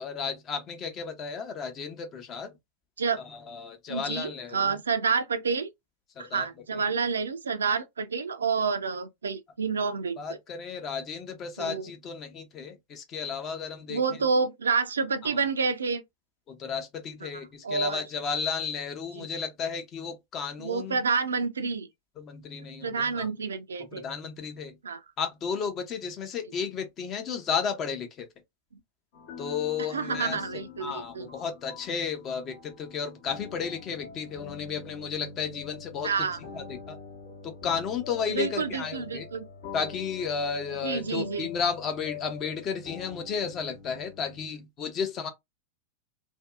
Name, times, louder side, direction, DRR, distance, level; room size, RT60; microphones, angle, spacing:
voice 1, 0.0-2.5 3.2-4.8 6.2-6.5 6.7-6.8 10.2-14.0 15.2-15.4 16.5-21.0 22.2-23.3 23.8-24.8 25.2-28.3 29.4-30.4 30.8-37.0 37.4-39.3 39.7-45.3, left 6 dB, 30° left, 0.6 m, -33 dB
voice 2, 3.9-5.7 6.2-10.2 11.6-11.9 13.9-16.0 17.3-18.0 19.2-19.3 20.6-21.9 22.8-24.0 24.8-25.0 29.9-31.3 36.0-36.4 38.3-39.5 40.8-41.5, right 5 dB, 70° right, 0.3 m, -29 dB
sound 1, 29.1-44.5, left 6 dB, 55° left, 0.9 m, -45 dB
2.6 x 2.2 x 2.3 m
figure-of-eight pair, 90°, 0 cm